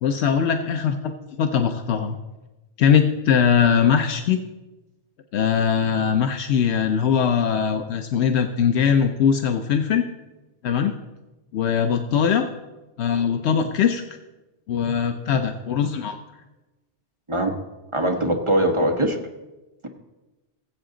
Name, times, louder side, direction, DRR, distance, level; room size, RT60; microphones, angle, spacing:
voice 1, 0.0-1.1 1.4-2.2 2.8-4.4 5.3-10.1 10.6-10.9 11.5-12.4 13.0-14.0 14.7-16.2, left 7 dB, 80° left, 6 dB, 0.9 m, -21 dB
voice 2, 17.9-19.2, right 1 dB, 30° right, 3 dB, 1.2 m, -21 dB
18.0 x 7.9 x 3.8 m, 1.1 s
omnidirectional pair, 1.1 m